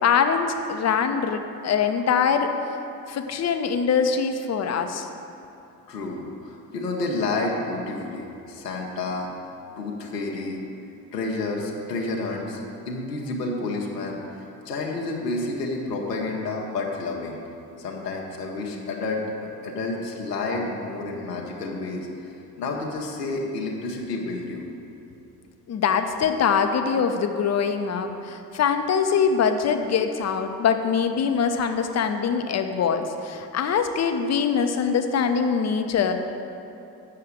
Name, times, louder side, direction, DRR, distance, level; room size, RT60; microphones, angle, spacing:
voice 1, 0.0-2.5 3.1-5.1 25.7-36.1, left 6 dB, 35° left, 7 dB, 0.8 m, -23 dB
voice 2, 5.9-9.3 9.8-10.6 11.0-17.4 17.8-22.3 22.6-24.6, left 2 dB, 80° left, -1 dB, 1.1 m, -30 dB
7.7 x 6.7 x 7.4 m, 2.7 s
figure-of-eight pair, 50°, 47 cm